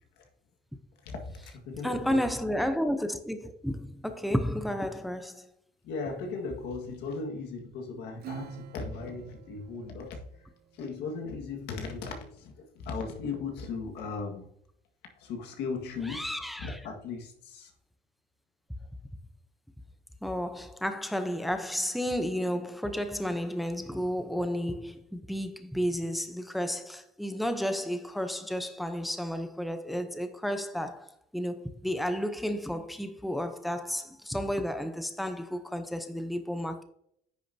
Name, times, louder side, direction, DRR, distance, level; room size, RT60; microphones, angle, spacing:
voice 1, 1.0-2.2 5.8-10.2 10.7-14.5 15.2-16.3 16.6-17.7, left 4 dB, 85° left, 1.8 m, -37 dB
voice 2, 1.8-5.5 16.1-16.8 20.2-36.8, equal, ahead, 0.8 m, -32 dB
Acoustic guitar / Strum, 8.2-11.1, right 10 dB, 70° right, 0.7 m, -47 dB
9.8 x 6.3 x 2.8 m
cardioid pair, 110°, 17 cm